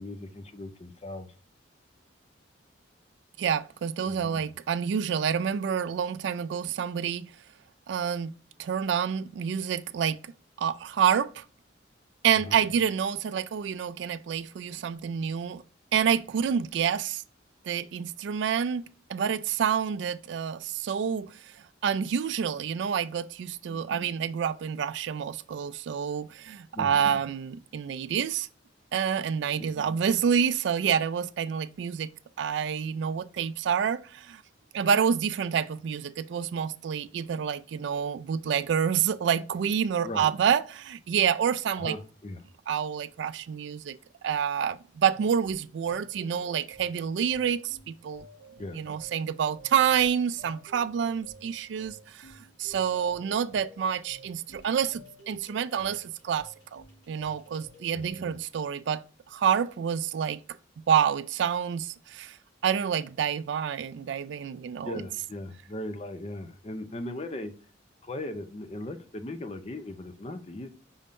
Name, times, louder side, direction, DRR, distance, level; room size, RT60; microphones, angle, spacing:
voice 1, 0.0-1.3 4.0-4.2 12.4-12.6 23.7-23.8 26.7-27.0 29.6-29.7 40.0-40.3 41.8-42.4 48.6-48.8 57.9-58.1 64.8-67.5 68.0-70.7, left 1 dB, 30° left, 0.5 m, -38 dB
voice 2, 3.4-7.3 7.9-8.3 8.6-10.3 10.6-11.4 12.2-15.6 15.9-17.2 17.7-21.3 21.8-28.5 28.9-32.1 32.4-34.4 34.7-41.9 42.7-48.2 48.8-52.3 52.6-59.0 59.3-60.4 60.9-62.4 62.6-65.0, right 7 dB, 65° right, 0.3 m, -28 dB
sound 1, 45.1-58.3, equal, 70° left, 1.7 m, -53 dB
5.4 x 3.5 x 2.5 m
head